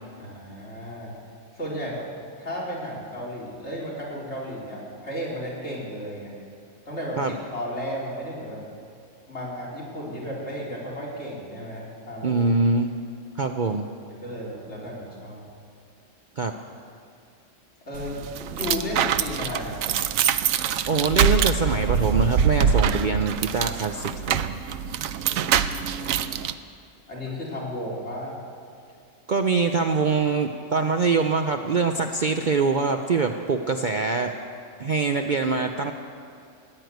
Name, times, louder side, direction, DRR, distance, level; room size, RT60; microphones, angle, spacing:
voice 1, 0.2-1.1 1.6-6.3 6.9-8.6 9.3-12.4 14.1-15.5 17.8-19.8 25.3-25.4 25.9-26.4 27.1-28.3, equal, 55° left, -5 dB, 4.4 m, -34 dB
voice 2, 12.2-12.9 13.4-13.9 16.4-16.5 20.9-24.6 29.3-34.3 34.8-35.9, right 4 dB, 45° right, 5 dB, 0.7 m, -24 dB
sound 1, 17.9-26.5, right 7 dB, 85° right, 1.0 m, -24 dB
15.5 x 9.7 x 9.2 m, 2.3 s
omnidirectional pair, 1.4 m